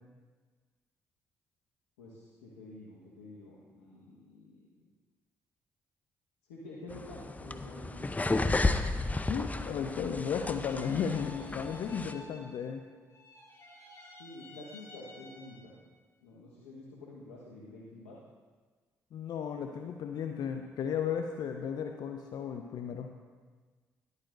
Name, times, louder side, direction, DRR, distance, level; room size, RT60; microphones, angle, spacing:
voice 1, 2.0-4.7 6.5-8.5 9.3-10.3 14.2-15.7 16.2-18.2, left 2 dB, 90° left, -6 dB, 1.4 m, -49 dB
sound 1, 6.9-12.1, left 2 dB, 20° left, 0.7 m, -33 dB
voice 2, 9.3-12.8 19.1-23.1, left 7 dB, 65° left, 5 dB, 0.6 m, -34 dB
sound 2, 10.2-12.8 13.1-15.8, left 1 dB, 45° left, 3.7 m, -53 dB
13.0 x 11.5 x 2.7 m, 1.4 s
hypercardioid pair, 50°, 8 cm